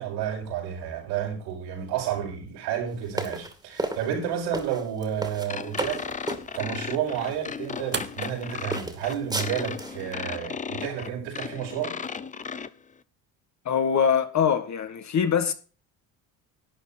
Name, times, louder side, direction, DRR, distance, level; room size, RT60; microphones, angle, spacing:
voice 1, 0.0-12.0, right 9 dB, 85° right, 5.3 m, -31 dB
sound 1, 3.1-6.4 7.2-7.4 7.9-8.4 8.7-10.0, right 2 dB, 10° right, 2.5 m, -33 dB
sound 2, 5.1-10.1, right 6 dB, 25° right, 1.2 m, -42 dB
sound 3, 5.5-12.7, left 6 dB, 20° left, 0.6 m, -35 dB
voice 2, 13.7-15.5, left 7 dB, 40° left, 1.8 m, -23 dB
12.0 x 8.4 x 4.3 m
supercardioid pair, 100°, 42 cm